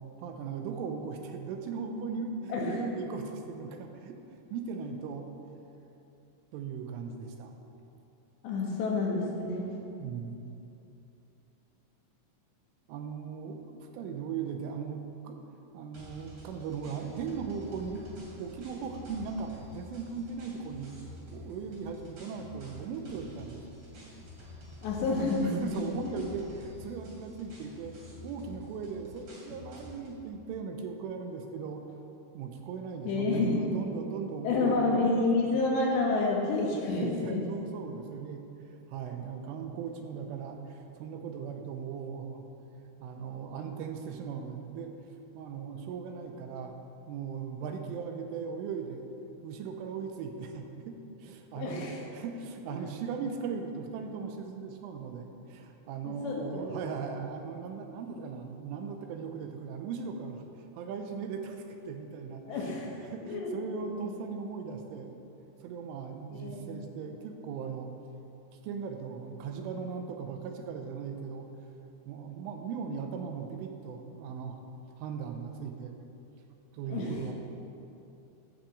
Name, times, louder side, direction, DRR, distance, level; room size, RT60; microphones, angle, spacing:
voice 1, 0.2-4.2 4.5-5.3 6.5-7.6 10.0-10.4 12.9-15.4 15.7-18.1 18.4-21.0 21.3-23.6 25.4-28.0 28.2-31.8 32.3-35.0 37.0-38.4 38.9-42.5 43.0-44.9 45.3-46.8 47.1-49.1 49.4-51.8 52.1-60.4 60.7-62.7 63.0-65.2 65.6-67.9 68.6-71.5 72.1-74.6 75.0-76.0 76.7-77.3, right 6 dB, 85° right, 5 dB, 3.3 m, -38 dB
voice 2, 8.4-9.7 24.8-26.1 33.0-33.6 34.4-37.5 51.5-52.0 52.7-52.8 56.1-56.9 62.5-62.9 63.2-63.8 64.0-64.1 66.3-66.7 76.9-77.2, left 3 dB, 70° left, -2 dB, 3.5 m, -29 dB
sound 1, 15.9-30.2, left 1 dB, 45° right, 3.4 m, -48 dB
13.0 x 6.2 x 7.5 m, 2.8 s
omnidirectional pair, 5.7 m